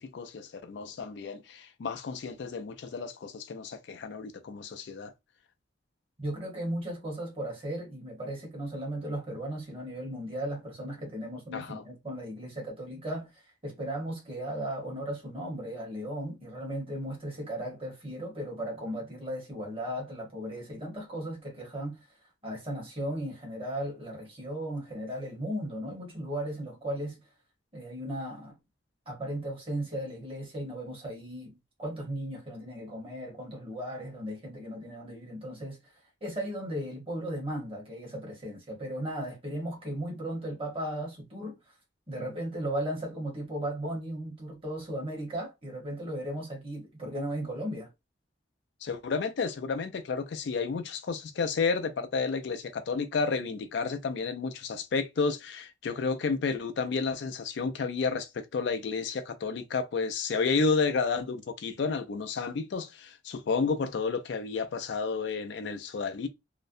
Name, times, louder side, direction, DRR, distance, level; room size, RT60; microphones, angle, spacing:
voice 1, 0.0-5.1 11.5-11.8 48.8-66.3, left 4 dB, 60° left, 0.3 m, -31 dB
voice 2, 6.2-22.1 22.4-27.2 27.7-28.5 29.1-35.9 36.2-41.6 42.1-47.9, right 1 dB, 30° right, 1.0 m, -36 dB
2.5 x 2.1 x 2.5 m
head